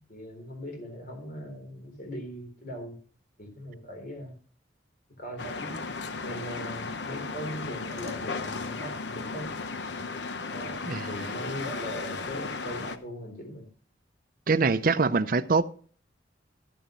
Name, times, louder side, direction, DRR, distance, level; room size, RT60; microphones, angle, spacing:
voice 1, 0.0-3.0 3.4-4.4 5.2-5.8 6.2-9.5 10.5-10.8 11.1-13.7, equal, 50° left, 4 dB, 3.7 m, -39 dB
sound 1, 5.4-13.0, left 4 dB, 70° left, 0.9 m, -35 dB
voice 2, 14.5-15.6, right 4 dB, 50° right, 14 dB, 0.5 m, -23 dB
13.5 x 10.5 x 3.1 m, 0.42 s
head